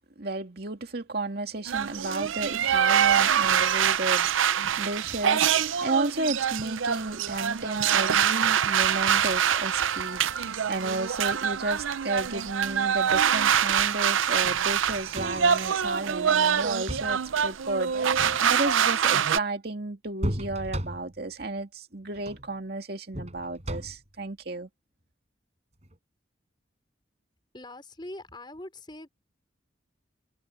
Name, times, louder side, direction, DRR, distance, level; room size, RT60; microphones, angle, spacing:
voice 1, 0.2-24.7, right 2 dB, 50° right, 2.3 m, -33 dB
sound 1, 1.7-19.4, right 8 dB, 90° right, 0.6 m, -25 dB
sound 2, 14.9-15.7 16.6-17.2 18.0-18.8 20.2-21.3 22.1-22.5 23.1-24.2 25.8-26.0, equal, 35° right, 4.9 m, -35 dB
voice 2, 27.5-29.1, left 1 dB, 25° left, 3.8 m, -42 dB
head